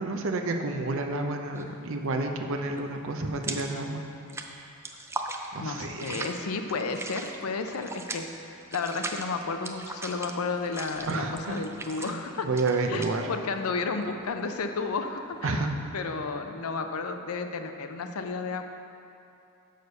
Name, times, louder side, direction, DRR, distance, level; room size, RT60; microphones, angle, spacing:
voice 1, 0.0-4.0 5.5-6.3 11.1-11.6 12.0-12.2 12.4-13.3 15.4-15.7, right 3 dB, 65° right, 4 dB, 0.7 m, -30 dB
sound 1, 1.4-1.8 2.1-3.8 4.1-15.7, right 2 dB, 10° right, 0.4 m, -39 dB
voice 2, 5.6-12.5 12.9-18.6, left 4 dB, 70° left, 6 dB, 0.5 m, -32 dB
6.6 x 6.5 x 5.4 m, 2.7 s
head